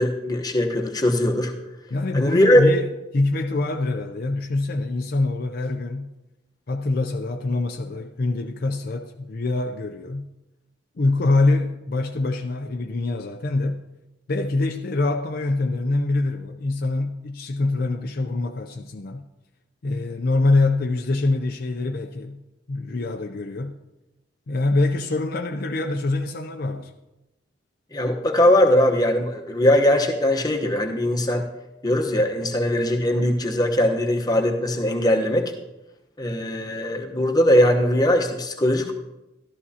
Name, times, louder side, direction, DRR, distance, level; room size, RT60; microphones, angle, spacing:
voice 1, 0.0-1.5 2.1-2.6 27.9-31.5 31.8-35.5 36.2-38.9, left 1 dB, 20° left, 2 dB, 1.0 m, -20 dB
voice 2, 1.9-6.1 6.7-10.3 11.0-13.8 14.3-19.2 19.8-22.4 22.7-23.7 24.5-26.9, left 2 dB, 50° left, 5 dB, 0.5 m, -24 dB
13.5 x 12.0 x 2.8 m, 0.97 s
head